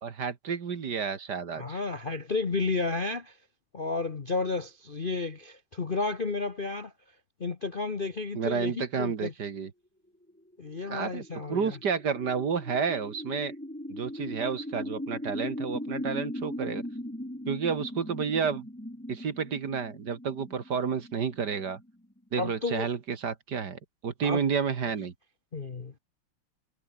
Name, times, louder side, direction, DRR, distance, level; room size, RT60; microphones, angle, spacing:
voice 1, 0.0-1.8 8.3-9.7 10.8-13.5 13.9-16.8 17.5-18.7 19.1-21.8 22.3-25.1, right 6 dB, 50° right, 2.2 m, -31 dB
voice 2, 1.6-3.4 3.7-6.9 7.4-9.3 10.6-11.8 22.4-22.9 24.2-24.4 25.5-25.9, left 3 dB, 35° left, 0.9 m, -32 dB
sound 1, 10.3-22.4, left 1 dB, 5° left, 2.1 m, -39 dB
omnidirectional pair, 2.4 m